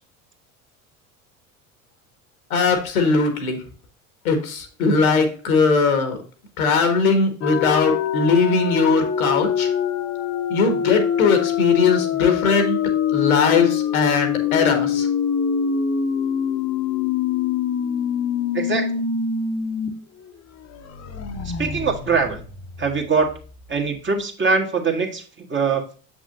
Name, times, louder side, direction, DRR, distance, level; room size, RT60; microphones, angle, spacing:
voice 1, 2.5-3.6 4.2-6.2 6.6-9.7 10.5-12.8 13.1-15.1, left 4 dB, 75° left, 6 dB, 1.6 m, -19 dB
sound 1, 7.4-19.9 20.2-20.3 20.7-23.4, left 8 dB, 35° left, 1.1 m, -24 dB
voice 2, 18.5-19.0 21.4-22.4 22.8-23.3 23.7-25.8, right 5 dB, 25° right, 3 dB, 1.5 m, -22 dB
7.3 x 6.2 x 2.6 m, 0.39 s
figure-of-eight pair, 70°, 43 cm